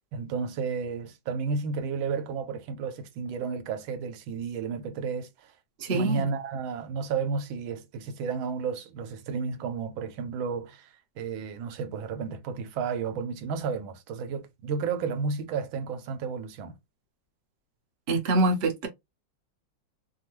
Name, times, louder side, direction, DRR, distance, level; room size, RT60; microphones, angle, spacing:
voice 1, 0.0-5.5 5.9-16.8, right 5 dB, 90° right, 1.4 m, -32 dB
voice 2, 5.8-6.2 18.1-18.9, right 2 dB, 50° right, 0.8 m, -25 dB
3.4 x 2.2 x 2.9 m
omnidirectional pair, 2.1 m